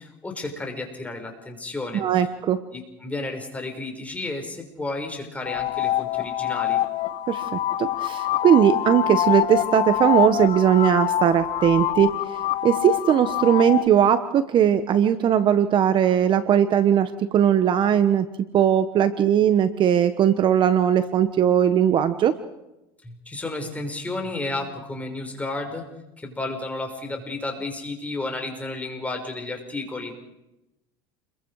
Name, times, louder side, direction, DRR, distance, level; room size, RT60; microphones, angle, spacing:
voice 1, 0.0-2.1 2.7-6.8 23.0-25.9 26.2-30.1, left 2 dB, 10° left, 3 dB, 5.6 m, -32 dB
voice 2, 1.9-2.6 7.3-7.4 7.8-12.2 12.6-18.3 18.5-22.3, right 9 dB, 40° right, 11 dB, 1.3 m, -19 dB
sound 1, 5.5-13.9, left 12 dB, 50° left, 1.4 m, -25 dB
29.5 x 22.5 x 4.9 m, 0.93 s
supercardioid pair, 115°, 12 cm